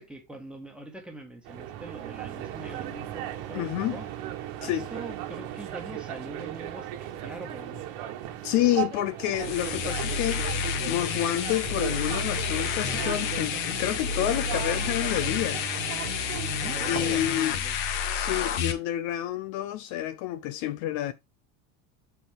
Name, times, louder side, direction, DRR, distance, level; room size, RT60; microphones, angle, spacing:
voice 1, 0.0-4.1 4.6-7.8 16.3-17.8, right 2 dB, 5° right, 1.6 m, -43 dB
sound 1, 1.4-17.5, right 11 dB, 65° right, 1.3 m, -37 dB
voice 2, 3.5-4.0 4.6-4.9 8.4-15.7 16.9-17.6 18.1-21.1, left 13 dB, 50° left, 0.6 m, -29 dB
sound 2, 9.3-18.7, left 7 dB, 70° left, 1.5 m, -30 dB
7.2 x 4.5 x 3.5 m
cardioid pair, 160°, 37 cm